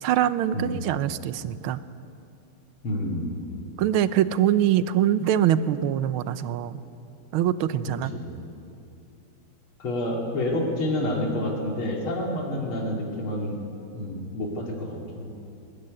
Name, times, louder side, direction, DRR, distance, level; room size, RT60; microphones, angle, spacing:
voice 1, 0.0-1.8 3.8-6.8 7.3-8.1, right 11 dB, 75° right, 14 dB, 1.6 m, -23 dB
voice 2, 2.8-3.3 8.1-8.3 9.8-13.6 13.9-15.3, left 1 dB, 70° left, -1 dB, 3.7 m, -28 dB
20.5 x 20.0 x 9.7 m, 2.6 s
omnidirectional pair, 2.4 m